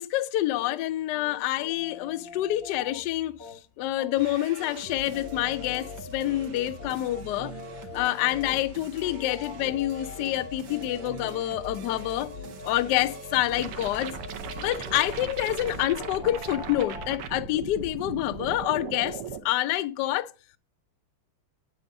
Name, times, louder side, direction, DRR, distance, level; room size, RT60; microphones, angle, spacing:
voice 1, 0.0-7.5 7.9-12.3 12.6-14.1 14.6-20.3, left 14 dB, 75° left, 0.9 m, -27 dB
sound 1, 0.5-4.3 4.6-13.7 13.9-17.1, left 4 dB, 35° left, 0.8 m, -43 dB
sound 2, 4.2-15.8, right 2 dB, 65° right, 1.7 m, -44 dB
sound 3, 13.6-19.4, right 6 dB, 85° right, 1.8 m, -38 dB
9.2 x 7.0 x 2.6 m
omnidirectional pair, 2.4 m